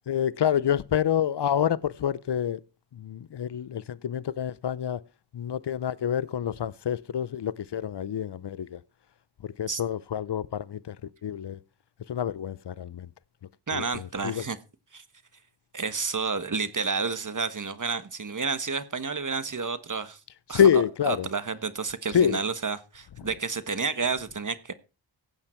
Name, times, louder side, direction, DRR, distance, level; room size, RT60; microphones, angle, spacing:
voice 1, 0.1-2.6 2.9-5.0 5.3-8.8 9.4-11.6 12.1-13.1 13.7-14.4 20.5-21.3 22.1-22.4, left 9 dB, 65° left, 0.7 m, -27 dB
voice 2, 13.7-14.6 14.9-15.0 15.7-20.2 20.5-20.6 21.1-24.7, right 4 dB, 40° right, 1.4 m, -30 dB
16.0 x 8.9 x 4.4 m
wide cardioid pair, 75°, 45 cm